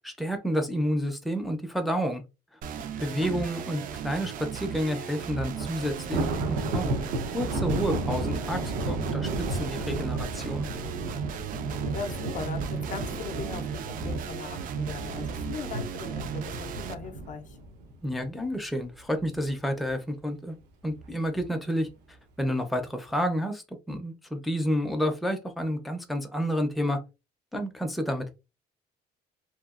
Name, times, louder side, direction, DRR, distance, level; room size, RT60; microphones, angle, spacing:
voice 1, 0.0-2.2 3.0-6.9 7.3-10.7 18.0-20.6 20.8-27.0 27.5-28.4, equal, ahead, 0.5 m, -30 dB
sound 1, 2.6-16.9, right 7 dB, 55° right, 0.4 m, -36 dB
voice 2, 3.1-3.5 11.6-17.6, left 5 dB, 50° left, 0.5 m, -39 dB
Thunder, 5.5-18.8 19.2-19.5 19.9-20.0 20.9-21.4, right 2 dB, 90° right, 0.7 m, -33 dB
2.8 x 2.3 x 2.3 m
cardioid pair, 110°, 17 cm